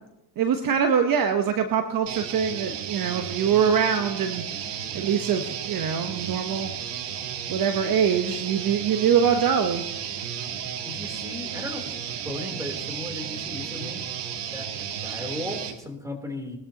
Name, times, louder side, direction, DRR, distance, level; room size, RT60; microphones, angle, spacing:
voice 1, 0.4-4.6 4.9-6.7 7.5-9.9, right 7 dB, 50° right, 7 dB, 1.1 m, -24 dB
sound 1, 2.1-15.8, right 9 dB, 70° right, 1.5 m, -33 dB
voice 2, 10.8-12.0 12.2-14.1 14.5-16.6, left 1 dB, 5° right, 3 dB, 3.4 m, -36 dB
19.5 x 13.0 x 2.9 m, 0.90 s
supercardioid pair, 85°, 44 cm